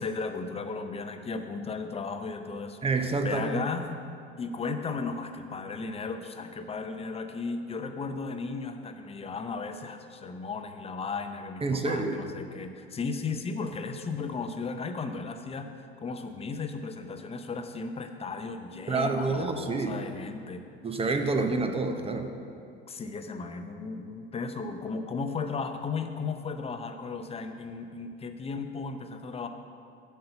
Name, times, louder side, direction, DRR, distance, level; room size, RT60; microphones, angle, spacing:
voice 1, 0.0-2.8 3.2-3.8 4.4-20.6 22.9-29.5, left 4 dB, 20° left, 7 dB, 0.7 m, -35 dB
voice 2, 2.8-3.6 11.6-12.2 18.9-20.0 20.8-22.3, right 3 dB, 20° right, 6 dB, 0.7 m, -28 dB
7.7 x 5.6 x 6.7 m, 2.5 s
figure-of-eight pair, 70°, 32 cm